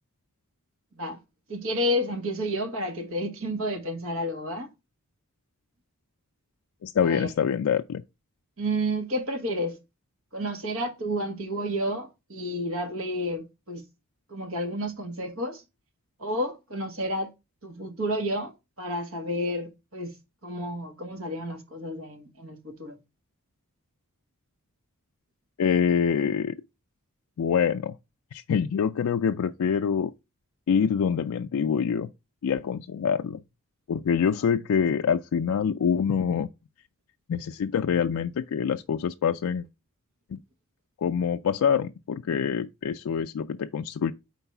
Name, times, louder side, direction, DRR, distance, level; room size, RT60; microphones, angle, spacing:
voice 1, 1.5-4.7 7.0-7.3 8.6-9.8 10.3-13.8 14.3-15.6 16.2-17.3 17.6-18.5 18.8-20.1 20.4-23.0, equal, 65° right, 1.5 m, -30 dB
voice 2, 6.8-8.0 25.6-26.6 27.4-27.9 28.3-30.1 30.7-32.1 32.4-33.4 33.9-36.5 37.3-39.7 40.3-40.4 41.0-44.1, left 7 dB, 75° left, 0.4 m, -25 dB
4.5 x 4.0 x 5.7 m
head